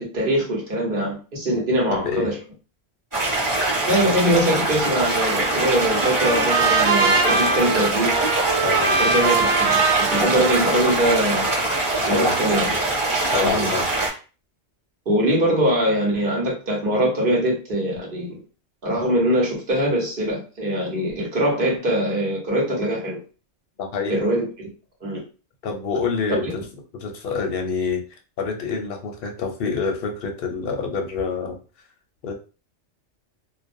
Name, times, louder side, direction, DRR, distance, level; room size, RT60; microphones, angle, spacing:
voice 1, 0.0-2.3 3.9-8.1 9.0-11.5 12.1-12.7 13.3-13.7 15.1-18.3 18.8-23.2 24.1-24.5 25.0-25.2 26.3-26.4, right 1 dB, 50° right, -2 dB, 1.0 m, -22 dB
voice 2, 1.5-2.3 8.6-9.1 12.1-12.4 13.3-13.9 23.8-24.2 25.6-26.6 26.9-28.0 28.4-31.6 32.2-32.3, left 5 dB, 60° left, 3 dB, 0.7 m, -27 dB
sound 1, 3.1-14.1, right 2 dB, 20° right, 0.9 m, -23 dB
Trumpet, 5.3-11.6, right 4 dB, 85° right, 1.0 m, -23 dB
2.4 x 2.1 x 2.5 m, 0.34 s
omnidirectional pair, 1.2 m